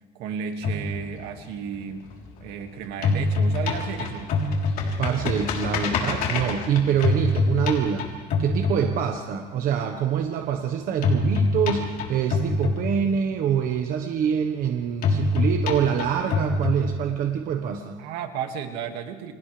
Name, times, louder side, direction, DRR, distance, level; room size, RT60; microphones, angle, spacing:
voice 1, 0.1-2.1 2.4-4.4 18.0-19.3, right 7 dB, 75° right, 5 dB, 2.2 m, -33 dB
sound 1, 0.6-2.6 2.9-9.4 11.0-13.4 15.0-17.4, left 3 dB, 55° left, 3.7 m, -25 dB
voice 2, 5.0-8.1 8.4-18.0, right 8 dB, 55° right, 4 dB, 1.3 m, -25 dB
29.5 x 26.0 x 3.4 m, 1.4 s
cardioid pair, 150°, 17 cm